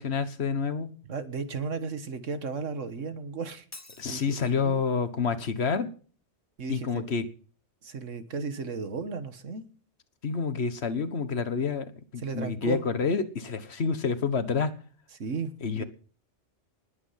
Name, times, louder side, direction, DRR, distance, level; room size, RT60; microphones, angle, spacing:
voice 1, 0.0-0.9 4.0-5.9 6.7-7.2 10.2-14.7 15.6-15.8, left 5 dB, 60° left, 11 dB, 1.5 m, -28 dB
voice 2, 1.1-3.7 4.1-4.2 4.6-4.8 6.6-6.9 7.8-9.6 12.2-12.8 15.2-15.8, right 5 dB, 90° right, 10 dB, 1.8 m, -34 dB
Shatter, 3.7-4.7, left 2 dB, 15° left, 0.8 m, -49 dB
19.5 x 8.6 x 5.7 m, 0.41 s
omnidirectional pair, 1.2 m